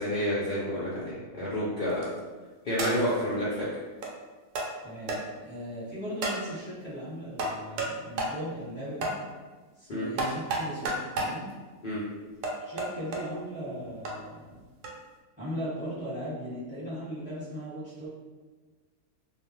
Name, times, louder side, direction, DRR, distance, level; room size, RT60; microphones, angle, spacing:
voice 1, 0.0-2.0 2.6-3.7 9.9-10.1 11.8-12.0, equal, 70° left, -10 dB, 0.4 m, -29 dB
sound 1, 1.9-2.2 2.8-3.2 4.0-4.1 4.6-4.7 5.1-5.2 6.2-6.4 7.4-7.9 8.2-8.3 9.0-9.2 10.2-11.3 12.4-13.2 14.1-14.2 14.8-15.0, right 2 dB, 85° right, 1.1 m, -31 dB
voice 2, 4.8-9.1 9.7-11.5 12.6-14.6 15.4-18.1, equal, 5° right, -11 dB, 1.1 m, -38 dB
2.4 x 2.4 x 2.9 m, 1.3 s
omnidirectional pair, 1.7 m